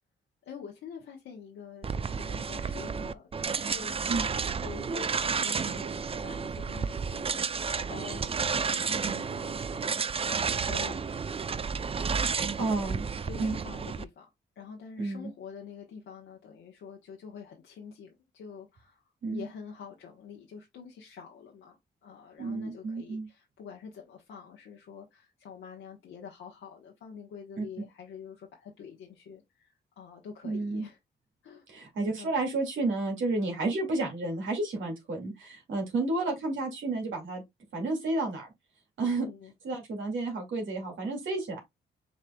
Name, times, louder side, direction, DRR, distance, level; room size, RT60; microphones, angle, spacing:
voice 1, 0.4-4.0 4.6-8.3 8.5-10.0 10.5-11.2 13.2-14.3 14.6-19.0 19.3-21.8 22.0-31.0 31.4-31.6 32.2-32.4 39.2-39.5, left 6 dB, 85° left, 1.1 m, -46 dB
sound 1, 1.8-14.0, right 5 dB, 30° right, 0.4 m, -31 dB
voice 2, 12.6-13.1 13.4-13.5 15.0-15.3 19.2-19.5 22.4-23.3 27.6-27.7 30.4-30.9 31.7-37.4 37.7-38.5 39.0-39.3 39.6-41.6, right 3 dB, 75° right, 2.2 m, -31 dB
6.5 x 3.2 x 2.3 m
cardioid pair, 65°, 20 cm